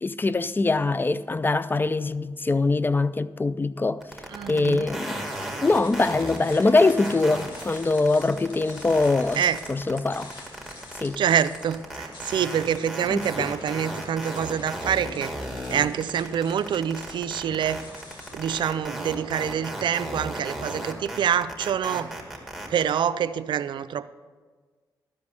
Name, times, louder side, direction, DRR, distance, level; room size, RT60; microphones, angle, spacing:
voice 1, 0.0-4.1 4.5-5.2 5.6-9.4 9.7-10.3 11.0-11.2 13.1-13.5, left 3 dB, 25° left, 0.4 m, -23 dB
sound 1, 4.0-23.0, right 1 dB, ahead, 2.2 m, -35 dB
voice 2, 4.3-4.9 9.4-9.6 11.2-15.3 15.7-17.8 18.3-22.1 22.7-24.1, right 9 dB, 75° right, 0.4 m, -26 dB
sound 2, 5.2-18.8, left 2 dB, 75° left, 2.2 m, -46 dB
13.0 x 5.2 x 6.7 m
cardioid pair, 60°, 8 cm